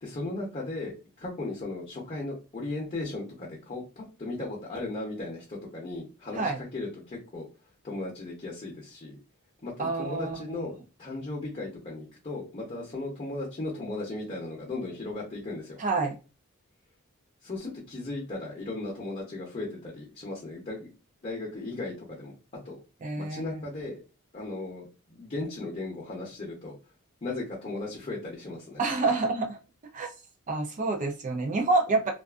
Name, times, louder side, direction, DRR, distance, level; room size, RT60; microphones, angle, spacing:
voice 1, 0.0-7.5 7.8-9.2 9.6-10.7 11.0-15.8 17.4-20.9 21.2-22.8 23.2-24.0 24.3-26.8 27.2-29.1, left 2 dB, 30° left, -3 dB, 0.7 m, -36 dB
voice 2, 9.8-10.6 15.8-16.1 23.0-23.6 28.8-29.6 29.9-30.1 30.5-32.1, right 3 dB, 35° right, 3 dB, 0.4 m, -28 dB
2.4 x 2.4 x 2.3 m, 0.31 s
head